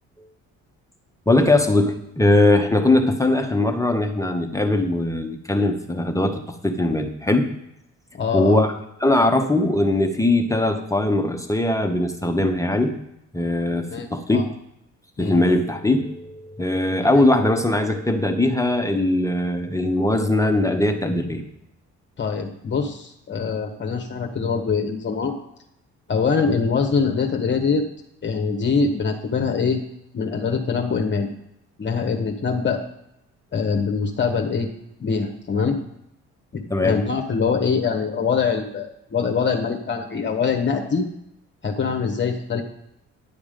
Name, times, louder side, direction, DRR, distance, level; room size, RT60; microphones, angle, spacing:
voice 1, 1.3-7.5 8.3-8.7 9.0-12.9 13.3-14.5 15.2-21.4 36.7-37.0, left 2 dB, 10° left, 4 dB, 1.0 m, -20 dB
voice 2, 8.1-8.6 13.9-14.4 15.2-15.4 17.1-17.2 22.2-25.3 26.1-27.8 28.2-29.8 30.1-31.3 31.8-32.8 33.5-34.7 35.0-35.8 36.5-41.0 41.6-42.6, left 5 dB, 40° left, 4 dB, 1.2 m, -23 dB
11.0 x 7.0 x 5.1 m, 0.80 s
cardioid pair, 90°, 30 cm